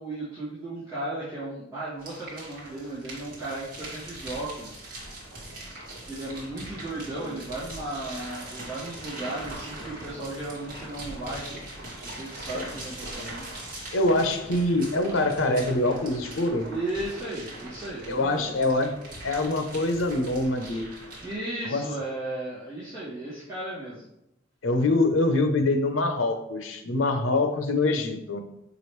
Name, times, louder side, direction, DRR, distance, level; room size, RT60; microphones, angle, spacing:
voice 1, 0.0-4.9 6.0-11.4 12.0-13.5 16.7-18.5 21.2-24.0, right 2 dB, 15° right, -14 dB, 2.3 m, -35 dB
sound 1, 2.0-21.3, right 1 dB, 45° right, 1.8 m, -41 dB
voice 2, 13.9-16.7 18.1-18.9 19.2-20.8 21.6-21.9 24.6-28.4, left 2 dB, 85° left, 6 dB, 0.8 m, -24 dB
6.9 x 5.0 x 3.2 m, 0.85 s
head